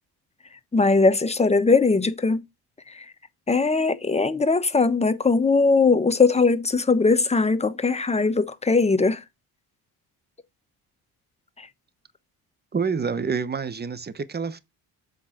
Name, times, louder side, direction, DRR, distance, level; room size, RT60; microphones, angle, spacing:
voice 1, 0.7-2.4 2.9-3.1 3.5-9.2 11.6-11.7, left 4 dB, 15° left, 1.1 m, -20 dB
voice 2, 12.7-14.6, right 5 dB, 25° right, 1.0 m, -27 dB
7.8 x 3.9 x 5.8 m
supercardioid pair, 75°, 39 cm